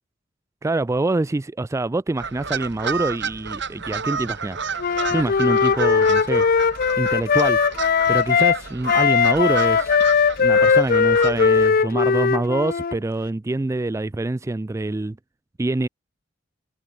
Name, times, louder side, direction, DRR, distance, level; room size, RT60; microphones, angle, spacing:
voice 1, 0.6-4.6 5.1-6.5 7.0-7.6 8.1-9.9 10.4-15.2 15.6-15.9, right 2 dB, 15° right, 0.3 m, -25 dB
sound 1, 2.2-11.7, right 5 dB, 65° right, 3.9 m, -31 dB
Wind instrument woodwind instrument, 4.8-8.6 8.9-13.0, left 6 dB, 50° left, 0.5 m, -19 dB
head